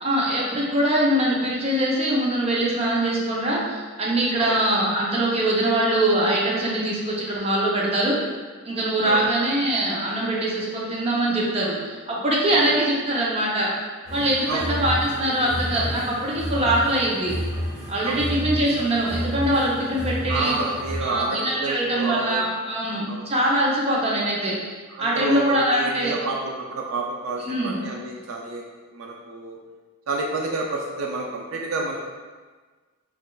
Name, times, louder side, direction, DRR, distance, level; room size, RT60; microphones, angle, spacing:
voice 1, 0.0-8.2 8.7-13.7 14.1-17.4 17.9-20.6 21.0-24.6 25.0-26.1 27.4-27.7, right 1 dB, 30° right, -4 dB, 0.6 m, -23 dB
sound 1, 14.1-21.0, equal, 10° right, 1.2 m, -31 dB
voice 2, 18.0-18.4 20.3-22.4 23.1-23.2 24.9-28.6 28.9-29.6 30.1-32.0, right 3 dB, 70° right, -1 dB, 0.4 m, -29 dB
4.9 x 2.4 x 2.3 m, 1.4 s
head